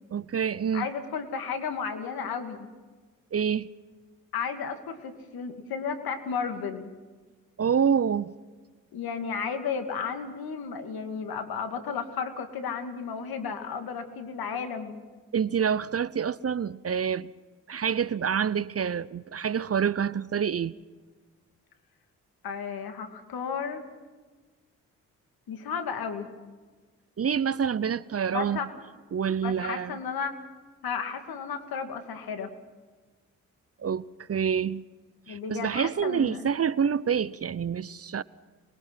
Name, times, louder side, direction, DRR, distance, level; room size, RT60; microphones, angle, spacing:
voice 1, 0.1-0.9 3.3-3.7 7.6-8.3 15.3-17.3 17.7-20.7 27.2-28.7 29.1-30.0 33.8-34.8 35.3-38.2, right 7 dB, 40° right, 0.8 m, -27 dB
voice 2, 0.7-2.7 4.3-6.9 8.9-15.0 22.4-23.8 25.5-26.3 28.3-28.7 29.4-30.4 30.8-32.5 35.3-36.4, left 6 dB, 70° left, 2.6 m, -33 dB
26.0 x 22.0 x 5.8 m
hypercardioid pair, 40°, 38 cm